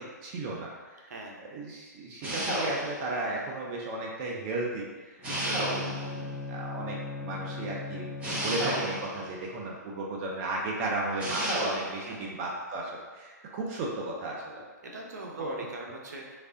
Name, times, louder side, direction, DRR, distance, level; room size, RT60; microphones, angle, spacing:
voice 1, 0.2-1.1 1.4-4.9 5.1-14.6 15.4-15.6, right 2 dB, 30° right, -2 dB, 0.5 m, -35 dB
voice 2, 1.1-1.4 5.4-5.8 12.0-12.4 14.8-16.4, right 2 dB, 65° right, 0 dB, 0.8 m, -42 dB
sound 1, 2.2-3.1 5.2-6.2 8.2-9.2 11.2-12.0, right 1 dB, 15° right, 1.0 m, -31 dB
Bowed string instrument, 5.2-9.3, left 3 dB, 20° left, 0.5 m, -39 dB
3.2 x 2.5 x 3.7 m, 1.4 s
hypercardioid pair, 140°, 10 cm